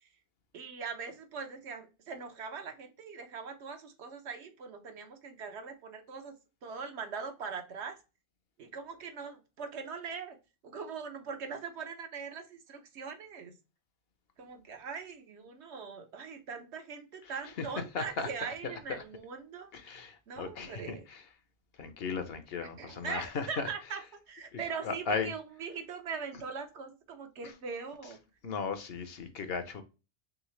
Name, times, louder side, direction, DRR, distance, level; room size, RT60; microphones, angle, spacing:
voice 1, 0.5-6.3 6.6-8.0 8.6-10.4 10.6-13.5 14.4-21.0 22.8-28.2, right 5 dB, 75° right, 1.1 m, -41 dB
voice 2, 17.9-18.3 18.6-19.0 19.7-21.2 21.8-23.7 24.5-25.3 28.4-29.8, left 5 dB, 65° left, 0.9 m, -36 dB
3.7 x 3.2 x 3.1 m
omnidirectional pair, 1.2 m